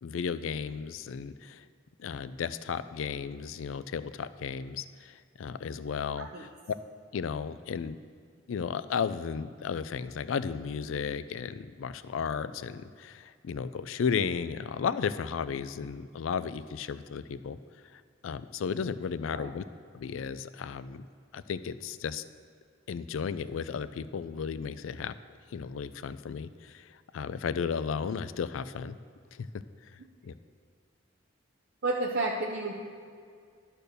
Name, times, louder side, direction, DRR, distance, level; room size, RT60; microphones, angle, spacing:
voice 1, 0.0-1.6 2.0-6.5 7.1-8.0 8.5-17.6 18.2-19.6 19.9-21.1 21.3-22.2 22.9-25.1 25.5-26.9 27.1-29.0 29.4-29.5 30.2-30.3, left 6 dB, 75° left, 14 dB, 0.4 m, -34 dB
voice 2, 31.8-32.8, right 2 dB, 55° right, -1 dB, 0.7 m, -31 dB
12.0 x 4.5 x 6.6 m, 2.1 s
head